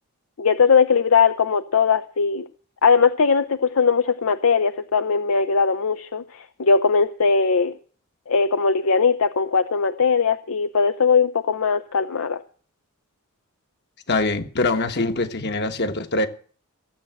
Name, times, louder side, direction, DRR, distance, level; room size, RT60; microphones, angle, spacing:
voice 1, 0.4-2.5 2.8-7.7 8.3-12.4, left 5 dB, 70° left, 0.7 m, -19 dB
voice 2, 14.1-16.3, left 2 dB, 50° left, 1.4 m, -23 dB
17.0 x 7.8 x 7.7 m
head